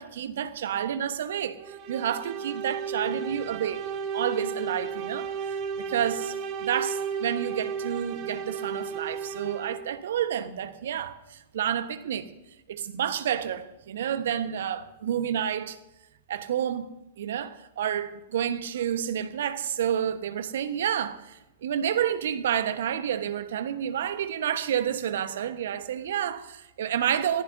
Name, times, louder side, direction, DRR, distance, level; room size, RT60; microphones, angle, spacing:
voice 1, 0.0-6.4 6.6-12.3 12.7-15.8 16.3-16.9 17.2-27.4, right 9 dB, 65° right, 1.2 m, -30 dB
sound 1, 1.6-10.0, right 6 dB, 40° right, 1.6 m, -34 dB
23.5 x 15.5 x 2.7 m
figure-of-eight pair, 105°, 0 cm